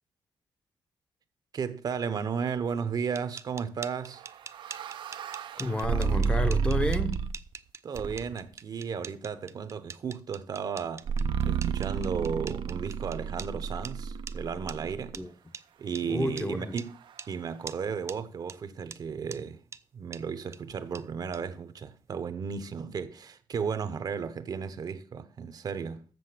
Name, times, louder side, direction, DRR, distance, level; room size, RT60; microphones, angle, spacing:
voice 1, 1.5-4.2 7.8-11.1 11.4-15.2 15.8-16.9 17.3-19.6 19.9-26.0, right 6 dB, 55° right, 0.8 m, -34 dB
sound 1, 3.0-13.5 13.8-13.9 14.3-14.4 14.7-14.8 15.1-15.2 15.5-15.6 16.0-16.1 16.4-16.5 16.8-16.9 17.2-17.3 17.7-17.8 18.1-18.2 18.5-18.6 18.9-19.0 19.3-19.4 19.7-19.8 20.1-20.2 20.5-20.6 20.9-21.0 21.3-21.4, right 5 dB, 35° right, 0.4 m, -43 dB
sound 2, 4.2-7.5 7.9-8.5 11.1-15.2, right 6 dB, 85° right, 0.6 m, -31 dB
voice 2, 5.6-7.3 15.1-15.3 16.0-16.7, left 1 dB, 15° left, 0.7 m, -31 dB
7.8 x 6.9 x 6.6 m
wide cardioid pair, 130°, 8 cm